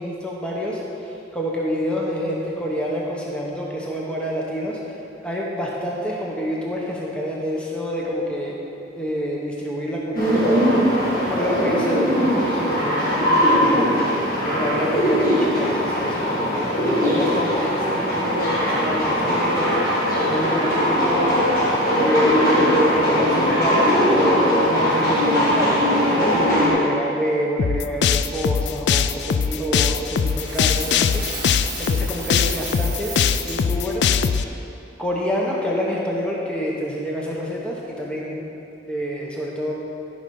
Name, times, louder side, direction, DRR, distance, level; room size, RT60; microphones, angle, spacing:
voice 1, 0.0-4.8 5.2-8.6 9.0-10.8 11.3-14.1 14.4-21.4 21.9-33.2 33.4-34.1 35.0-38.5 38.9-39.7, equal, 5° left, -4 dB, 1.0 m, -27 dB
sound 1, 10.1-26.7, equal, 55° left, 2.2 m, -20 dB
sound 2, 27.6-34.4, left 7 dB, 75° left, 0.3 m, -21 dB
Coin (dropping), 30.2-33.7, right 4 dB, 20° right, 1.7 m, -34 dB
12.5 x 5.6 x 5.4 m, 2.8 s
head